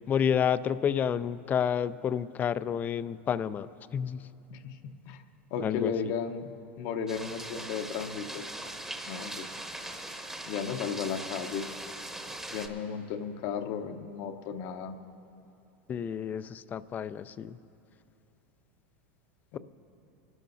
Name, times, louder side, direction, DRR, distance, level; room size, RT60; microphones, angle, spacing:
voice 1, 0.1-4.2 5.6-6.1 15.9-17.6, left 8 dB, 25° left, 15 dB, 0.3 m, -30 dB
voice 2, 4.5-5.2 5.5-6.5 6.8-8.5 9.1-9.6 10.5-11.7 12.5-14.9 19.5-19.6, left 7 dB, 55° left, 8 dB, 0.8 m, -35 dB
sound 1, 7.1-12.7, right 1 dB, 5° right, 0.9 m, -40 dB
25.0 x 12.5 x 2.6 m, 2.8 s
supercardioid pair, 130°, 7 cm